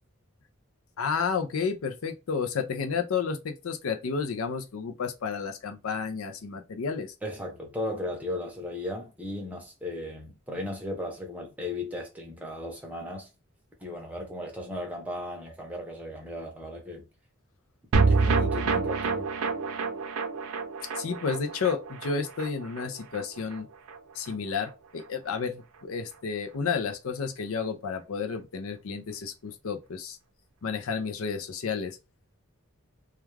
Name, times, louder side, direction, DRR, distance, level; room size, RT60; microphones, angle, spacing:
voice 1, 1.0-7.1 21.0-23.7 24.2-30.2 30.6-32.0, left 5 dB, 75° left, 0.5 m, -31 dB
voice 2, 7.2-13.3 13.8-17.0 18.1-19.3, left 1 dB, 5° right, 0.7 m, -36 dB
sound 1, 17.9-24.4 24.6-24.7 25.0-25.1, right 4 dB, 90° right, 0.5 m, -28 dB
2.3 x 2.3 x 3.1 m
head